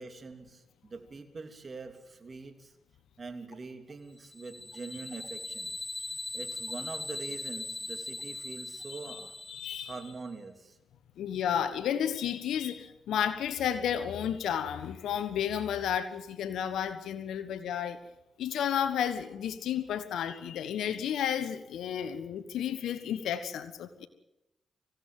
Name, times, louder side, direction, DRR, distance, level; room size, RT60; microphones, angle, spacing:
voice 1, 0.0-2.7 3.2-5.7 6.3-9.3 9.9-10.8, right 4 dB, 45° right, 6 dB, 3.1 m, -44 dB
sound 1, 4.2-10.2, left 2 dB, 25° left, 1.5 m, -40 dB
voice 2, 8.9-9.2 9.5-9.9 11.2-18.0 18.4-24.1, left 9 dB, 80° left, 12 dB, 1.2 m, -32 dB
25.5 x 17.0 x 7.5 m, 0.92 s
supercardioid pair, 50°, 0 cm